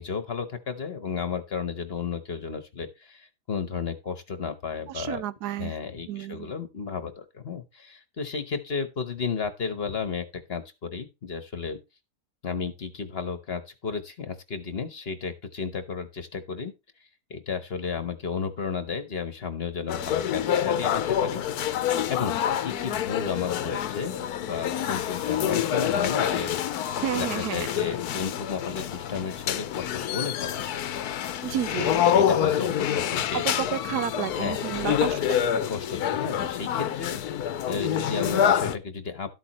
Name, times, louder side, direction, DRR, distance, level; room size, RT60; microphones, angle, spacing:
voice 1, 0.0-5.2 5.6-11.8 12.4-16.7 17.3-21.4 22.1-26.6 27.1-30.8 31.4-33.4 34.4-35.4 35.7-37.2 37.6-39.3, left 6 dB, 45° left, 1.2 m, -33 dB
voice 2, 4.9-5.7 6.1-6.5 27.0-27.7 31.4-31.9 33.3-35.2, right 11 dB, 80° right, 1.2 m, -31 dB
sound 1, 19.9-38.7, left 9 dB, 75° left, 1.2 m, -27 dB
12.5 x 8.5 x 3.0 m
omnidirectional pair, 1.7 m